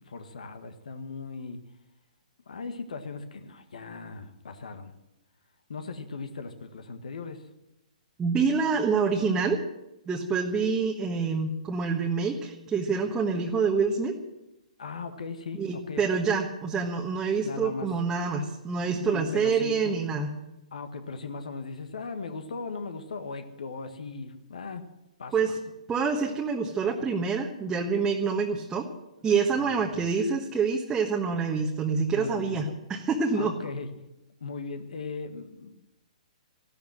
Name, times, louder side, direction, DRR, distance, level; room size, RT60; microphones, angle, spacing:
voice 1, 0.0-1.6 2.5-4.9 5.7-7.4 14.8-16.2 17.4-17.9 19.1-19.9 20.7-24.8 25.2-25.3 29.6-30.0 32.2-32.6 33.3-33.9 34.4-35.8, left 4 dB, 65° left, 8 dB, 1.7 m, -38 dB
voice 2, 8.2-9.6 10.1-14.1 15.6-20.3 25.3-25.6 25.9-28.9 29.2-33.5, right 5 dB, 15° right, 0 dB, 1.4 m, -27 dB
15.0 x 12.0 x 7.7 m, 0.92 s
figure-of-eight pair, 125°, 4 cm